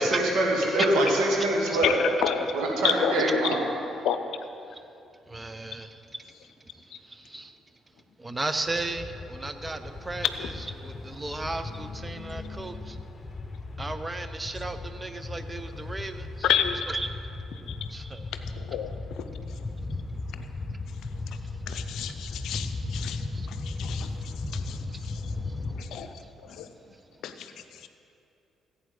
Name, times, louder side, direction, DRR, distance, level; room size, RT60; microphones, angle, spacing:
voice 1, 0.0-2.0 2.5-3.6, right 1 dB, 65° right, -2 dB, 2.1 m, -24 dB
voice 2, 1.8-2.5 2.8-3.1 4.0-4.2 10.4-10.5 12.1-13.0 16.4-16.7 17.7-17.8 18.6-18.9 19.2-19.3 20.3-20.4 21.7-24.1 24.5-24.8 25.1-25.2 25.7-26.1 26.4-26.7 27.2-27.5 27.8-27.9, left 9 dB, 65° left, 9 dB, 0.6 m, -30 dB
voice 3, 5.3-6.2 7.1-7.5 8.2-10.5 10.8-13.0 13.8-16.5 16.9-17.1 17.9-18.3 23.3-23.5 23.9-24.0 24.6-26.1, right 2 dB, 20° right, 9 dB, 0.8 m, -35 dB
sound 1, 8.7-25.8, left 3 dB, 30° left, 1.0 m, -36 dB
15.5 x 8.5 x 3.9 m, 2.6 s
figure-of-eight pair, 45°, 0 cm